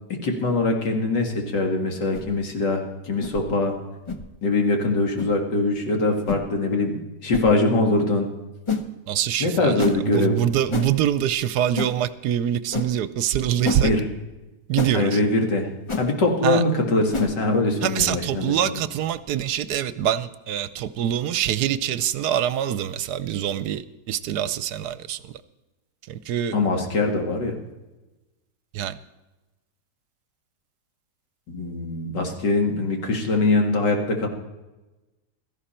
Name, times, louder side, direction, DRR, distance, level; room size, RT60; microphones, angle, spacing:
voice 1, 0.2-3.8 4.4-8.3 9.4-10.4 13.8-14.1 14.9-15.7 16.0-18.6 26.5-27.5 31.5-34.3, left 2 dB, 85° left, 2 dB, 2.6 m, -22 dB
sound 1, 2.1-2.3 3.2-3.4 4.1-4.2 5.2-5.3 6.3-6.4 7.3-7.5 8.7-8.9 9.8-10.0 10.7-10.9 11.8-11.9 12.7-12.9 13.6-13.8 14.8-15.0 15.9-16.1 17.1-17.3, left 3 dB, 25° left, 0.6 m, -27 dB
voice 2, 9.1-13.9 14.7-15.2 16.4-16.6 17.8-25.3 26.1-26.6 28.7-29.0, right 10 dB, 70° right, 14 dB, 1.1 m, -25 dB
16.5 x 14.0 x 4.4 m, 1.1 s
omnidirectional pair, 1.8 m